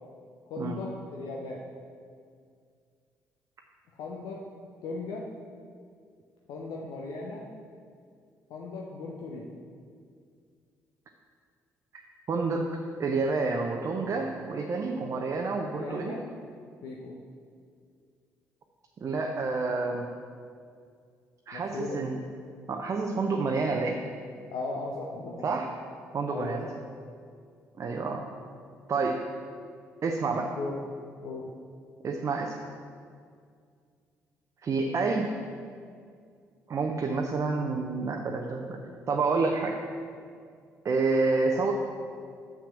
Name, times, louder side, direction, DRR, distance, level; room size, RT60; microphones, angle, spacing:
voice 1, 0.5-1.6 4.0-4.4 4.8-5.3 6.5-7.5 8.5-9.7 15.6-16.2 16.8-17.2 21.5-22.1 24.5-25.6 26.3-26.7 30.4-30.8 31.2-31.5, left 3 dB, 55° left, -2 dB, 0.8 m, -37 dB
voice 2, 12.3-12.6 13.0-16.2 19.0-20.1 21.5-22.2 22.7-24.0 25.4-25.7 26.1-26.7 27.8-28.2 28.9-29.2 30.0-30.5 32.0-32.5 34.6-35.3 36.7-38.8 39.1-39.8 40.8-41.7, right 4 dB, 40° right, 2 dB, 0.7 m, -28 dB
7.1 x 5.8 x 6.1 m, 2.2 s
figure-of-eight pair, 45°, 8 cm